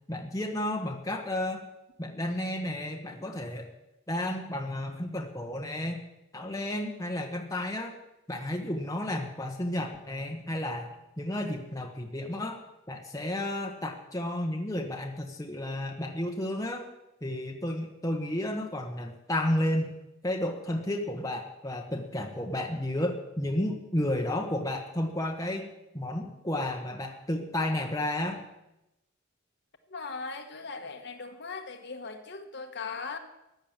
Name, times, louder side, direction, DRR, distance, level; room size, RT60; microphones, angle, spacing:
voice 1, 0.1-1.6 2.0-3.7 4.1-6.0 6.3-7.9 8.3-12.6 12.9-16.9 17.2-19.9 20.2-25.7 25.9-28.4, left 1 dB, 15° left, 1 dB, 1.3 m, -32 dB
voice 2, 29.9-33.2, left 4 dB, 50° left, 5 dB, 1.4 m, -39 dB
15.0 x 9.8 x 7.4 m, 0.91 s
head